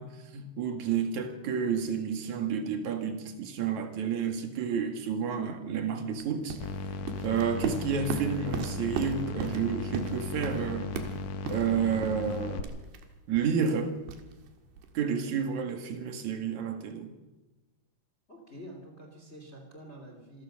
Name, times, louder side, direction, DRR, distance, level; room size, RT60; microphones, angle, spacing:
voice 1, 0.0-6.6 7.2-10.9 11.5-12.7 13.3-13.9 14.9-17.1, right 7 dB, 55° right, 5 dB, 3.0 m, -30 dB
sound 1, 6.2-15.0, right 5 dB, 80° right, 3.7 m, -38 dB
sound 2, 6.6-12.6, left 3 dB, 65° left, 2.0 m, -36 dB
voice 2, 18.3-20.4, equal, 20° left, 3 dB, 2.6 m, -47 dB
26.5 x 15.0 x 6.6 m, 1.1 s
omnidirectional pair, 4.6 m